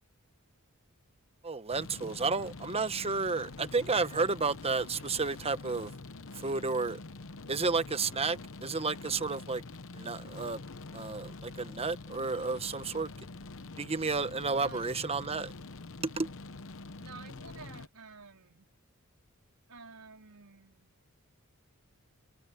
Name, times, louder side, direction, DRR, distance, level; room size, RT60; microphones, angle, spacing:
voice 1, 1.4-5.9 6.3-7.0 7.5-9.6 9.9-10.6 10.9-13.1 13.8-15.5 16.0-16.3, right 4 dB, 25° right, 1.1 m, -32 dB
sound 1, 1.7-17.9, left 3 dB, 60° left, 1.0 m, -46 dB
voice 2, 17.0-18.7 19.7-20.9, right 4 dB, 85° right, 4.3 m, -51 dB
head